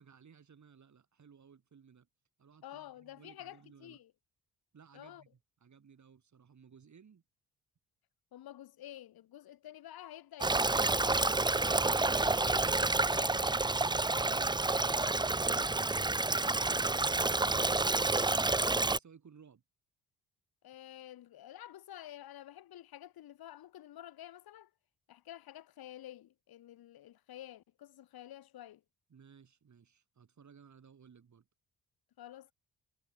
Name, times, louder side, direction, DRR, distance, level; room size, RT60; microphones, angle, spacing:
voice 1, 0.0-2.1 2.4-4.0 4.7-7.2 29.1-31.5, right 6 dB, 50° right, 5.4 m, -60 dB
voice 2, 2.6-4.1 4.9-5.2 8.3-12.4 20.6-24.7 25.1-28.8 32.2-32.5, left 12 dB, 75° left, 2.1 m, -50 dB
Stream, 10.4-19.0, right 2 dB, 10° right, 0.8 m, -29 dB
supercardioid pair, 65°, 37 cm